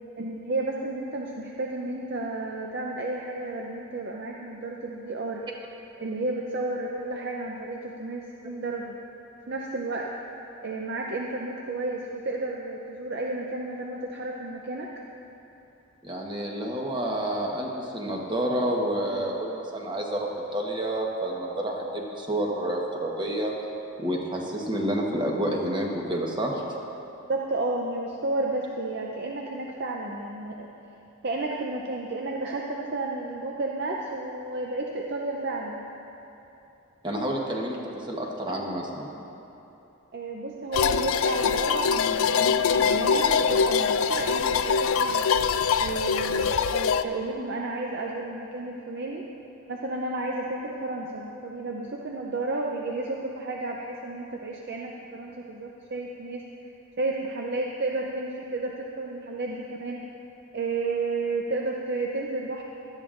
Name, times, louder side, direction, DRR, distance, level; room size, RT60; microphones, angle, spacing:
voice 1, 0.2-5.4 6.0-9.0 9.5-10.1 10.6-14.9 27.3-30.7 31.2-35.8 40.1-45.3 45.8-49.2 49.7-56.5 57.0-60.1 60.5-62.6, right 2 dB, 50° right, -1 dB, 0.6 m, -32 dB
voice 2, 16.0-23.5 24.0-26.6 37.0-39.1, right 1 dB, 20° right, -1 dB, 1.1 m, -29 dB
sound 1, 40.7-47.0, left 6 dB, 65° left, 0.3 m, -23 dB
17.0 x 12.5 x 2.5 m, 2.9 s
head